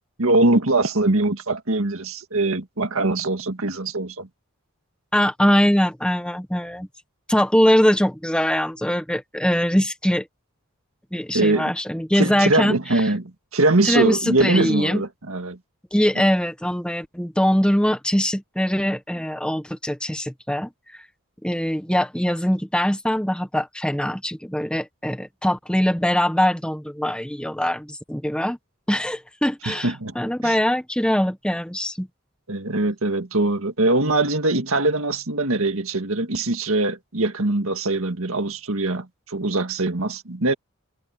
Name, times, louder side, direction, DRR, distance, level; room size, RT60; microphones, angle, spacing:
voice 1, 0.2-4.3 11.3-11.7 12.2-15.6 16.2-16.3 29.7-30.1 30.4-30.6 32.5-40.5, right 2 dB, 70° right, 1.9 m, -22 dB
voice 2, 5.1-6.9 7.3-10.3 11.1-13.0 13.8-15.0 15.9-21.0 21.4-28.6 28.9-32.1, equal, 5° left, 0.9 m, -22 dB
head